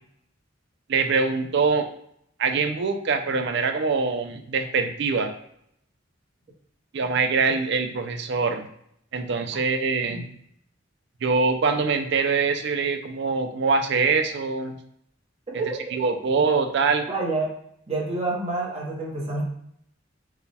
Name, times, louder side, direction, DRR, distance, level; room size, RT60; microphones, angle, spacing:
voice 1, 0.9-1.9 2.4-5.3 6.9-8.7 9.1-10.3 11.2-14.8 15.9-17.0, right 4 dB, 60° right, 6 dB, 0.5 m, -23 dB
voice 2, 17.1-17.5 17.9-19.4, right 2 dB, 30° right, -3 dB, 1.0 m, -28 dB
4.6 x 2.3 x 3.4 m, 0.70 s
head